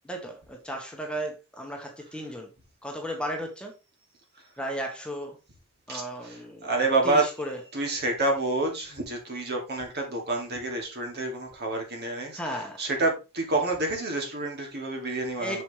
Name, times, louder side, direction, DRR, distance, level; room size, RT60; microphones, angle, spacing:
voice 1, 0.0-2.5 2.8-3.7 4.6-5.4 5.9-6.7 7.0-7.6 12.4-12.8 15.4-15.6, equal, 5° left, 1.4 m, -35 dB
voice 2, 5.9-7.2 7.7-12.4 12.8-15.6, right 2 dB, 50° right, 2.4 m, -28 dB
6.9 x 6.3 x 3.3 m
head